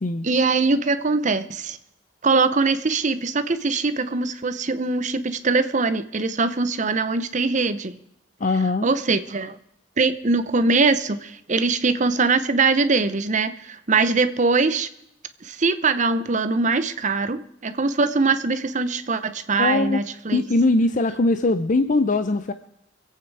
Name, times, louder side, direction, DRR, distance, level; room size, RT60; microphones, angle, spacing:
voice 1, 0.2-1.8 2.2-8.0 8.8-9.6 10.0-14.9 15.4-20.4, right 4 dB, 40° right, 11 dB, 0.8 m, -22 dB
voice 2, 8.4-8.9 19.6-20.0 20.3-22.5, left 2 dB, 45° left, 10 dB, 0.5 m, -21 dB
24.0 x 8.6 x 4.7 m, 0.78 s
head